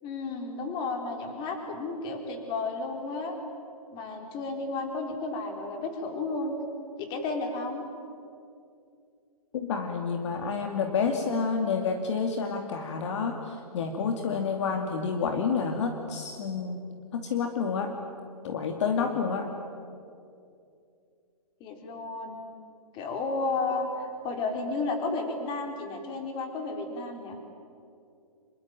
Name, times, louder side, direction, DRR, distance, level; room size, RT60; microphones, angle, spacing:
voice 1, 0.0-3.4 3.9-6.6 7.0-7.8 21.6-22.4 22.9-23.9 24.2-27.4, left 3 dB, 25° left, 4 dB, 4.0 m, -32 dB
voice 2, 9.5-16.8 17.1-17.9 18.4-19.5, left 5 dB, 50° left, 4 dB, 2.6 m, -29 dB
26.5 x 22.5 x 9.1 m, 2.5 s
hypercardioid pair, 145°, 19 cm